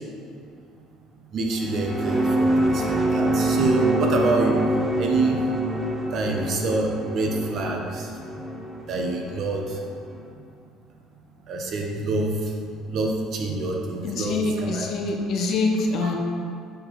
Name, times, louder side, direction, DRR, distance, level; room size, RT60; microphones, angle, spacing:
voice 1, 1.3-4.6 5.0-5.4 6.1-8.1 8.9-9.6 11.5-12.3 12.9-14.9 16.0-16.1, right 3 dB, 45° right, 1 dB, 0.8 m, -26 dB
sound 1, 1.5-10.2, right 1 dB, 10° right, 0.5 m, -26 dB
voice 2, 14.0-16.1, left 3 dB, 50° left, 2 dB, 0.7 m, -25 dB
5.2 x 4.3 x 4.5 m, 2.2 s
cardioid pair, 150°, 0 cm